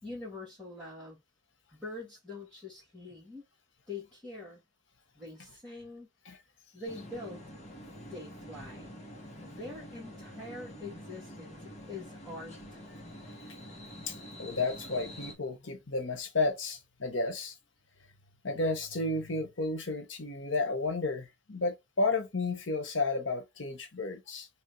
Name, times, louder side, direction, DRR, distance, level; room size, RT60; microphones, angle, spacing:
voice 1, 0.0-1.2 1.7-3.4 3.9-4.6 5.2-6.1 6.7-7.4 8.0-9.0 9.4-12.8, left 2 dB, 5° left, 2.0 m, -44 dB
sound 1, 6.9-15.3, equal, 35° left, 1.5 m, -47 dB
voice 2, 14.1-17.6 18.4-24.5, left 3 dB, 80° left, 1.2 m, -32 dB
3.6 x 3.2 x 3.2 m
head